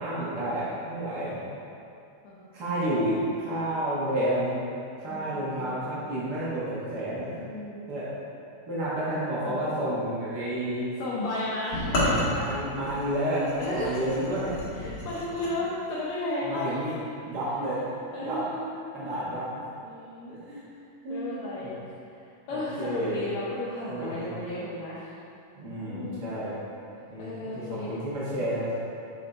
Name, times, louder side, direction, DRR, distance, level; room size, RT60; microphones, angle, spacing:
voice 1, 0.0-1.4 2.5-4.6 5.0-7.3 7.9-8.1 8.7-10.9 12.2-14.5 16.4-17.0 17.2-17.8 18.2-18.5 18.9-19.6 20.3-20.6 21.0-21.7 22.5-23.2 23.9-24.4 25.5-26.6 27.1-28.8, right 1 dB, 85° right, -9 dB, 0.9 m, -30 dB
voice 2, 5.1-5.5 7.4-7.9 9.4-9.6 11.0-12.3 13.6-14.0 14.7-16.8 18.1-18.7 19.0-19.2 19.8-20.3 21.1-21.7 22.5-25.1 25.9-26.3 27.2-27.9, left 2 dB, 75° left, -8 dB, 1.6 m, -34 dB
sound 1, 11.7-15.5, left 1 dB, 50° left, 1.8 m, -30 dB
8.5 x 4.0 x 4.3 m, 2.5 s
omnidirectional pair, 4.2 m